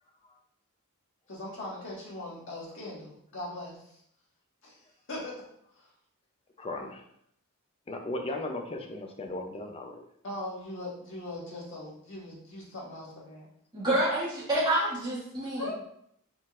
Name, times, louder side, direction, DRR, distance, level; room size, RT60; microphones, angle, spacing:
voice 1, 1.3-3.8 4.6-4.8 5.1-5.3 5.8-5.9 10.2-13.5 15.5-15.7, left 1 dB, 60° left, -5 dB, 1.6 m, -40 dB
voice 2, 6.6-7.0 7.9-10.0, left 2 dB, 25° left, 3 dB, 0.5 m, -36 dB
voice 3, 13.7-15.7, right 1 dB, 20° right, -9 dB, 1.7 m, -28 dB
4.3 x 3.8 x 2.5 m, 0.70 s
head